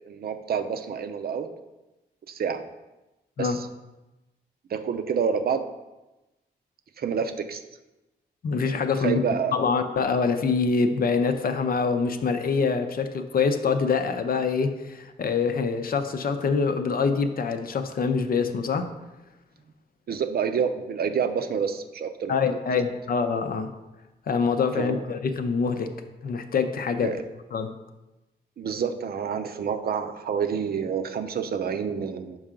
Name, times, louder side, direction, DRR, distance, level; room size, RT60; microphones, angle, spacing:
voice 1, 0.1-1.5 2.3-2.6 3.4-3.7 4.7-5.7 7.0-7.6 9.0-9.5 20.1-22.8 24.8-25.0 27.0-27.2 28.6-32.4, right 6 dB, 60° right, 8 dB, 0.6 m, -28 dB
voice 2, 8.4-9.2 9.5-18.9 22.3-23.7 24.3-25.9 26.2-27.1 27.5-27.7, left 5 dB, 55° left, 8 dB, 0.6 m, -25 dB
5.5 x 4.7 x 3.7 m, 1.0 s
cardioid pair, 60°, 18 cm